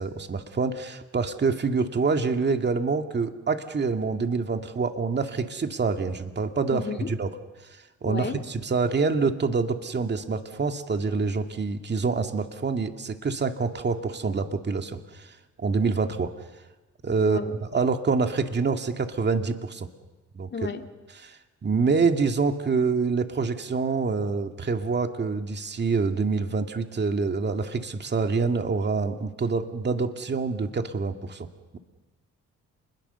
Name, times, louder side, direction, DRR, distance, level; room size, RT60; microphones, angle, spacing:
voice 1, 0.0-6.8 7.1-7.3 8.0-16.3 17.0-19.9 20.3-20.5 21.2-31.5, right 4 dB, 35° right, 6 dB, 2.1 m, -26 dB
voice 2, 6.7-7.1 8.0-8.4 17.2-17.8 20.5-20.9, left 5 dB, 35° left, 5 dB, 2.3 m, -33 dB
29.5 x 21.0 x 6.9 m, 1.1 s
cardioid pair, 90°, 30 cm